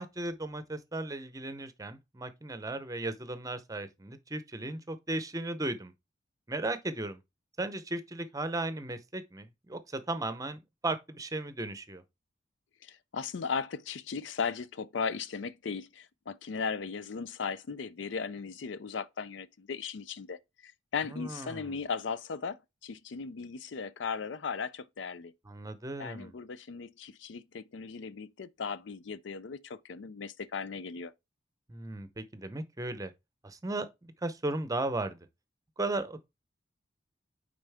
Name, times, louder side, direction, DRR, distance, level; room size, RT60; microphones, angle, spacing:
voice 1, 0.0-5.9 6.5-7.2 7.6-12.0 21.1-21.7 25.5-26.3 31.7-33.1 33.4-35.2 35.8-36.2, right 2 dB, 20° right, 0.7 m, -36 dB
voice 2, 12.8-25.3 26.0-31.1, left 5 dB, 75° left, 0.5 m, -37 dB
9.0 x 3.9 x 3.4 m
head